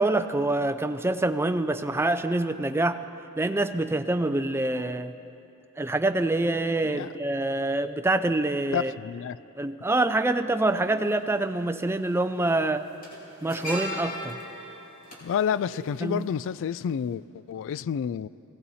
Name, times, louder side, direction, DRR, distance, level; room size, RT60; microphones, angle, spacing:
voice 1, 0.0-3.0 3.4-5.1 5.8-8.9 9.6-12.9 13.4-14.4 16.0-16.3, right 2 dB, 10° right, 0.5 m, -26 dB
voice 2, 8.7-9.4 15.2-18.3, left 8 dB, 60° left, 0.3 m, -29 dB
sound 1, 10.5-10.6 11.8-12.1 12.4-16.7 16.9-17.1, equal, 40° left, 3.3 m, -38 dB
20.5 x 17.0 x 4.2 m
head